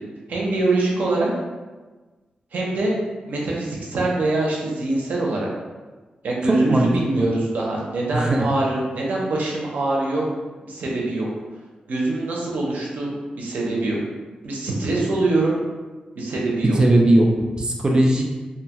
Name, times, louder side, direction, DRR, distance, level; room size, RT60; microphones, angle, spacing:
voice 1, 0.3-1.3 2.5-3.0 3.2-5.5 6.2-10.3 10.6-11.3 11.9-14.0 14.4-15.6 16.1-16.8, right 2 dB, 85° right, -3 dB, 0.7 m, -24 dB
voice 2, 6.5-6.9 7.2-7.3 8.1-8.5 16.6-17.3 17.6-18.2, right 1 dB, 30° right, 0 dB, 0.4 m, -18 dB
2.7 x 2.3 x 2.9 m, 1.3 s
wide cardioid pair, 135°, 3 cm